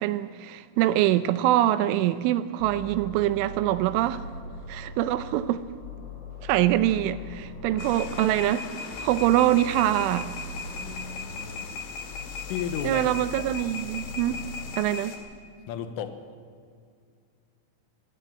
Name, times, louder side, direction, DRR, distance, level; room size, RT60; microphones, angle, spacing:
voice 1, 0.0-4.2 4.7-5.6 6.4-8.7 9.0-10.3 12.8-14.4 14.8-15.2, right 13 dB, 80° right, 3.0 m, -24 dB
sound 1, 2.6-5.5 5.8-8.6 8.9-11.6 12.1-14.7, left 1 dB, 35° left, 3.1 m, -41 dB
sound 2, 7.8-15.2, left 5 dB, 60° left, 3.7 m, -38 dB
voice 2, 10.8-11.7 12.5-13.0 13.4-13.5 15.7-16.2, left 8 dB, 80° left, 3.7 m, -34 dB
19.5 x 16.0 x 9.0 m
omnidirectional pair, 5.8 m